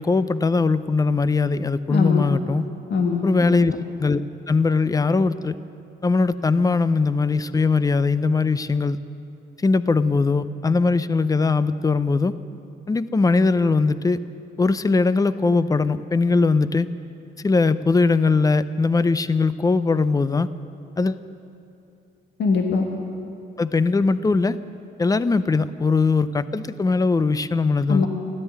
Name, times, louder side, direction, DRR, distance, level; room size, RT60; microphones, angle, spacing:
voice 1, 0.0-2.7 3.2-3.7 4.0-4.2 4.5-5.6 6.0-9.0 9.6-12.3 12.9-14.2 14.6-16.9 17.4-20.5 21.0-21.2 23.6-24.6 25.0-28.1, left 4 dB, 20° left, 14 dB, 0.5 m, -20 dB
voice 2, 1.9-2.2 2.9-3.6 22.4-22.9 27.9-28.1, left 4 dB, 60° left, 2 dB, 1.4 m, -21 dB
13.5 x 12.0 x 8.4 m, 2.6 s
cardioid pair, 90°, 20 cm